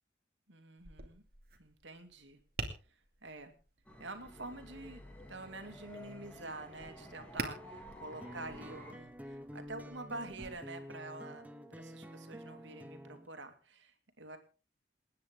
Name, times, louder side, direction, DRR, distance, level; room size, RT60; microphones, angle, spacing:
voice 1, 0.5-1.2 1.6-2.4 2.9-3.5 4.0-14.4, right 2 dB, 80° right, 6 dB, 2.7 m, -47 dB
Tap, 0.8-10.5, right 3 dB, 50° right, 2.5 m, -48 dB
sound 1, 3.9-8.9, left 1 dB, 5° left, 2.8 m, -51 dB
sound 2, 8.2-13.3, equal, 10° right, 1.0 m, -49 dB
28.5 x 9.6 x 3.7 m, 0.34 s
head